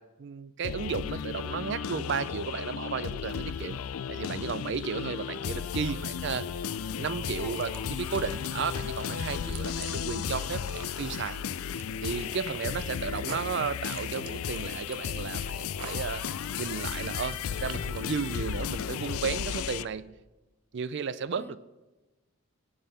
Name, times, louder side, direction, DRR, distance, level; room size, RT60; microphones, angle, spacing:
voice 1, 0.0-3.8 4.1-6.5 7.0-11.4 12.0-16.2 16.6-20.1 20.7-21.6, right 5 dB, 50° right, 17 dB, 0.4 m, -34 dB
sound 1, 0.6-19.9, left 7 dB, 75° left, 0.4 m, -34 dB
Stream / Ocean, 4.2-11.5, right 4 dB, 35° right, 0.9 m, -58 dB
sound 2, 7.3-18.1, right 7 dB, 90° right, 0.9 m, -48 dB
voice 2, 7.4-7.9 9.4-9.7 21.4-21.6, left 1 dB, 10° left, 11 dB, 0.4 m, -48 dB
18.0 x 7.7 x 5.4 m, 1.1 s
head